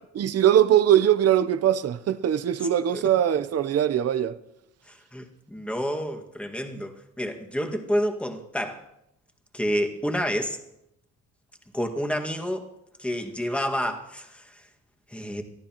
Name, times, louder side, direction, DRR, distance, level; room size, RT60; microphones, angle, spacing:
voice 1, 0.2-4.3, right 10 dB, 55° right, 0.8 m, -21 dB
voice 2, 4.9-8.8 9.5-10.6 11.7-12.7 13.0-14.7 15.1-15.4, equal, 5° left, 1.9 m, -29 dB
23.5 x 14.0 x 3.0 m
cardioid pair, 90°, 30 cm